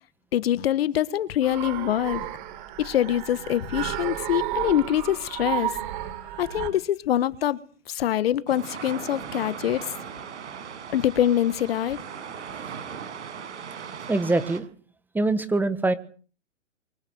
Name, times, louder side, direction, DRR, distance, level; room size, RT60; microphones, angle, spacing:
voice 1, 0.3-2.3 2.8-5.7 6.4-7.6 7.9-9.9 10.9-12.0, left 11 dB, 50° left, 1.6 m, -24 dB
sound 1, 1.4-6.7, right 13 dB, 40° right, 4.0 m, -32 dB
sound 2, 8.5-14.6, right 7 dB, 65° right, 6.9 m, -38 dB
voice 2, 14.1-14.7 15.1-15.9, right 2 dB, 5° right, 1.6 m, -23 dB
24.5 x 15.5 x 9.5 m
hypercardioid pair, 135°, 37 cm